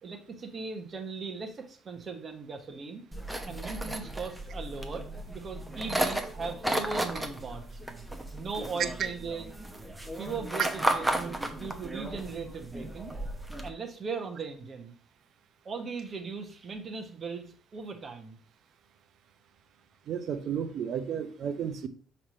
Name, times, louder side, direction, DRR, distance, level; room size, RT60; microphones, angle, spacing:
voice 1, 0.0-3.0 3.5-5.1 5.3-7.8 8.3-9.5 10.1-13.1 13.6-14.9 15.6-18.4, right 4 dB, 35° right, 5 dB, 1.1 m, -38 dB
sound 1, 3.1-13.7, right 1 dB, 5° right, 0.9 m, -34 dB
voice 2, 20.1-21.9, right 8 dB, 55° right, 10 dB, 0.8 m, -33 dB
5.7 x 3.2 x 5.6 m, 0.43 s
cardioid pair, 115°, 0 cm